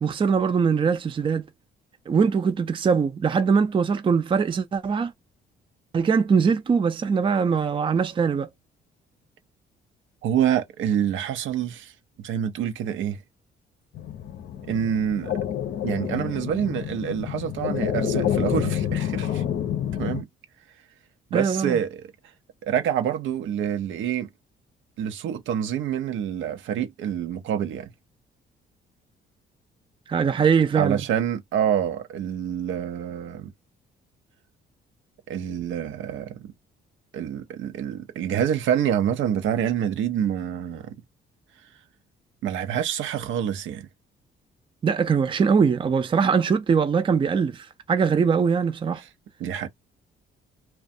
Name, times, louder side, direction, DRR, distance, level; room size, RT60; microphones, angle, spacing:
voice 1, 0.0-1.4 2.1-5.1 5.9-8.5 21.3-21.8 30.1-31.0 44.8-49.0, right 6 dB, 25° right, 0.4 m, -22 dB
voice 2, 10.2-11.9 12.2-13.2 14.7-15.3 15.8-19.4 20.0-20.3 21.3-22.1 22.6-24.3 25.0-27.9 30.8-33.5 35.3-36.5 37.1-41.0 42.4-43.9 49.4-49.7, right 9 dB, 80° right, 0.6 m, -27 dB
sound 1, 13.9-20.2, left 10 dB, 60° left, 0.6 m, -28 dB
2.4 x 2.2 x 2.6 m
cardioid pair, 90°, 20 cm